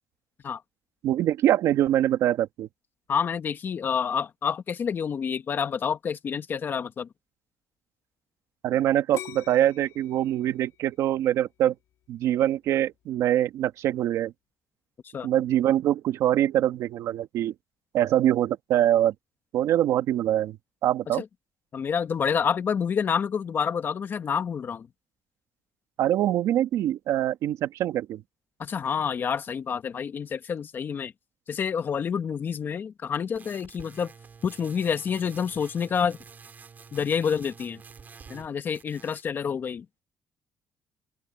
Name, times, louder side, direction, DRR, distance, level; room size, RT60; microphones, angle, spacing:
voice 1, 1.0-2.7 8.6-11.7 12.1-14.3 15.2-17.5 17.9-19.1 19.5-20.6 20.8-21.2 26.0-28.2, right 12 dB, 75° right, 1.7 m, -24 dB
voice 2, 3.1-7.1 15.1-15.3 21.2-21.3 21.7-24.9 28.6-31.1 31.5-34.1 34.4-36.2 36.9-37.8 38.3-39.9, left 7 dB, 40° left, 1.8 m, -28 dB
sound 1, 9.1-12.0 12.6-13.0, left 12 dB, 75° left, 4.1 m, -44 dB
sound 2, 33.4-38.5 38.7-39.3, right 6 dB, 35° right, 6.9 m, -48 dB
open air
cardioid pair, 115°, 5 cm